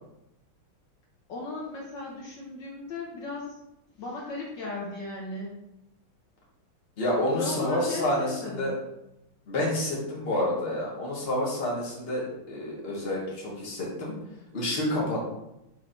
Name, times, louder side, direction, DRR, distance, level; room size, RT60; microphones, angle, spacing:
voice 1, 1.3-3.5 4.0-5.6 7.3-8.8, left 2 dB, 65° left, -3 dB, 1.7 m, -36 dB
voice 2, 7.0-8.7 9.5-14.1 14.5-15.2, left 1 dB, 30° left, -4 dB, 1.9 m, -29 dB
5.9 x 3.9 x 5.2 m, 0.87 s
omnidirectional pair, 2.3 m